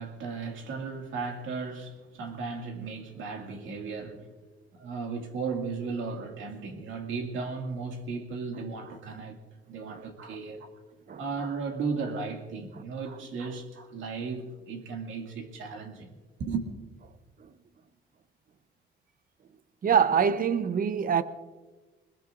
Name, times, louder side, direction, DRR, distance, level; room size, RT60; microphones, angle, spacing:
voice 1, 0.0-4.3 4.7-9.4 9.7-10.7 11.2-16.1 16.4-16.7, right 4 dB, 80° right, 2.2 m, -35 dB
voice 2, 19.8-21.2, right 7 dB, 45° right, 0.8 m, -25 dB
22.0 x 21.0 x 2.6 m
cardioid pair, 90°, 20 cm